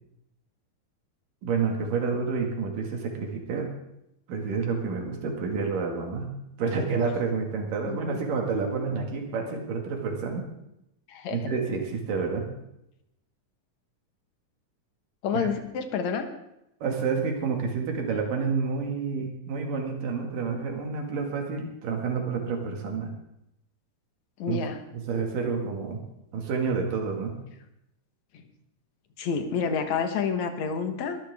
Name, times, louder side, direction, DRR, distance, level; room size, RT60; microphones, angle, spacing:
voice 1, 1.4-3.7 4.3-6.3 6.6-10.5 11.3-12.5 15.3-15.5 16.8-23.1 24.5-24.6 24.9-26.0 26.3-27.4, right 5 dB, 80° right, 2 dB, 3.7 m, -29 dB
voice 2, 7.8-8.2 11.1-11.5 15.2-16.3 24.4-24.8 28.3-28.4 29.2-31.2, left 6 dB, 65° left, 6 dB, 2.5 m, -29 dB
22.5 x 13.5 x 3.6 m, 0.83 s
omnidirectional pair, 3.8 m